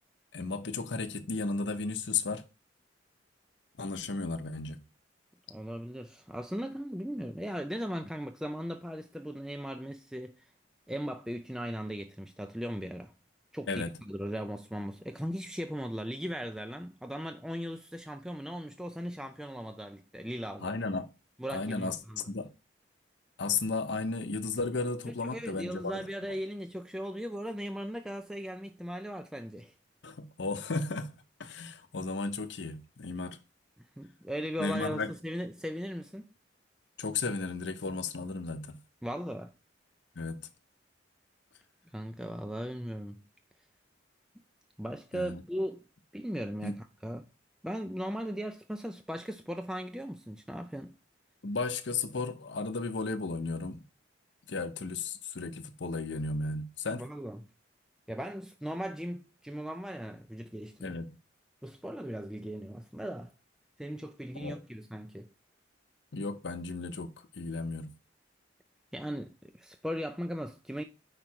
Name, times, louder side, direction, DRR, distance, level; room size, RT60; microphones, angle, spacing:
voice 1, 0.3-2.4 3.8-4.8 13.7-13.9 20.6-21.1 21.5-22.0 22.3-22.5 23.4-26.0 30.0-31.1 31.4-33.4 34.6-35.1 37.0-38.8 40.2-40.5 45.1-45.4 46.6-46.8 51.4-53.8 54.5-57.0 60.8-61.1 64.3-64.6 66.1-67.9, left 3 dB, 70° left, 0.7 m, -34 dB
voice 2, 5.5-10.5 10.9-13.1 13.5-20.8 21.4-22.3 25.1-29.7 34.0-36.3 39.0-39.5 41.9-43.2 44.8-45.8 46.1-47.3 47.6-51.0 56.9-57.5 58.1-61.0 61.6-63.3 63.8-65.3 68.9-70.8, equal, 5° right, 0.3 m, -38 dB
5.1 x 4.8 x 4.4 m
head